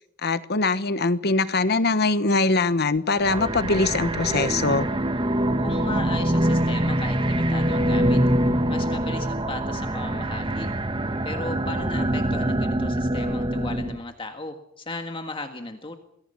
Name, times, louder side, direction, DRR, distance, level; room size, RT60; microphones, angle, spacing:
voice 1, 0.2-4.9, left 3 dB, 55° left, 1.2 m, -22 dB
sound 1, 3.2-14.0, right 1 dB, 25° right, 1.4 m, -24 dB
voice 2, 5.6-8.2 8.7-10.7 11.2-16.0, left 2 dB, 25° left, 1.7 m, -36 dB
28.5 x 21.5 x 5.7 m
head